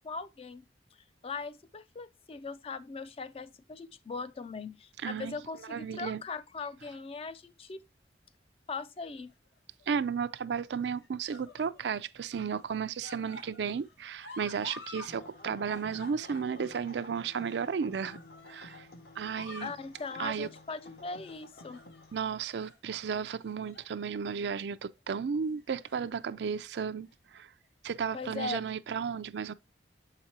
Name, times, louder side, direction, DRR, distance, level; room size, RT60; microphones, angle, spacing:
voice 1, 0.0-0.6 1.2-7.8 8.7-9.3 19.6-21.8 28.1-28.6, left 4 dB, 35° left, 0.4 m, -40 dB
voice 2, 5.0-5.4 5.7-6.2 9.9-18.2 18.5-18.9 19.2-19.7 20.2-20.5 22.1-27.5 27.8-29.5, right 6 dB, 75° right, 0.4 m, -34 dB
sound 1, 9.3-9.8 10.7-12.0 12.4-15.1 15.4-18.9 19.2-19.8 20.3-20.6 21.2-22.2 22.6-22.8 23.4-23.9 24.3-24.5 25.6-26.2 27.1-27.2, left 3 dB, 75° left, 1.2 m, -50 dB
sound 2, 15.1-22.1, left 2 dB, 55° left, 0.9 m, -52 dB
7.2 x 4.9 x 2.8 m
head